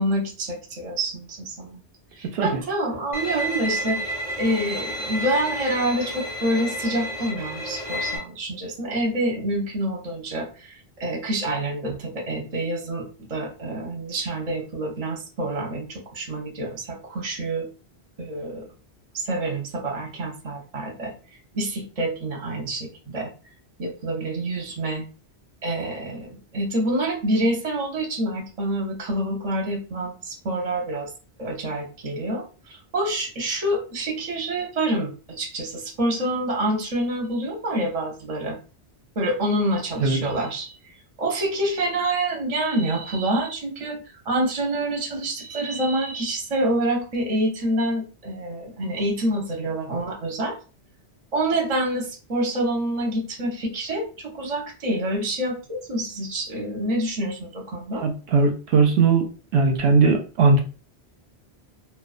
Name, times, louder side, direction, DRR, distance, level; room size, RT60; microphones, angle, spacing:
voice 1, 0.0-1.8 2.1-17.7 18.2-18.6 19.1-21.1 21.5-23.3 23.8-25.0 25.6-31.1 31.4-38.6 39.2-40.9 41.2-44.0 44.3-50.6 51.3-58.0, right 1 dB, 40° right, 0 dB, 0.7 m, -27 dB
Bowed string instrument, 3.1-8.2, equal, 5° right, 0.6 m, -30 dB
voice 2, 58.0-59.3 59.5-60.6, right 4 dB, 85° right, 4 dB, 0.8 m, -19 dB
2.3 x 2.2 x 2.4 m, 0.36 s
omnidirectional pair, 1.1 m